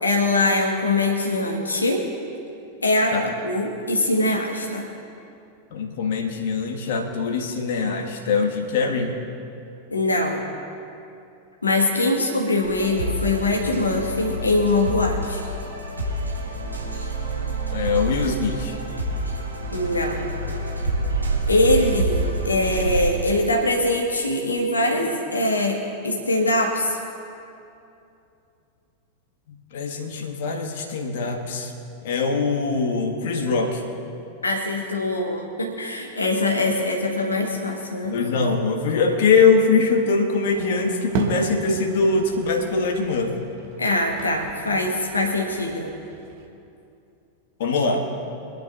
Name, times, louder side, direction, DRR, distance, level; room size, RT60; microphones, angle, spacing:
voice 1, 0.0-2.0 2.8-3.2 3.4-4.9 9.9-10.4 11.6-15.4 19.7-20.3 21.5-27.0 34.4-38.2 43.8-45.9, left 2 dB, 80° left, 0 dB, 1.3 m, -22 dB
voice 2, 5.7-9.2 17.7-18.8 29.5-31.7 32.0-33.8 38.1-43.3 47.6-48.0, left 4 dB, 55° left, 3 dB, 1.5 m, -22 dB
sound 1, 12.6-23.0, equal, 85° right, 2.7 m, -29 dB
sound 2, 16.0-23.7, right 5 dB, 70° right, 1.3 m, -30 dB
sound 3, 40.5-46.5, right 5 dB, 50° right, 1.7 m, -34 dB
26.0 x 10.5 x 2.5 m, 2.7 s
figure-of-eight pair, 90°, 0 cm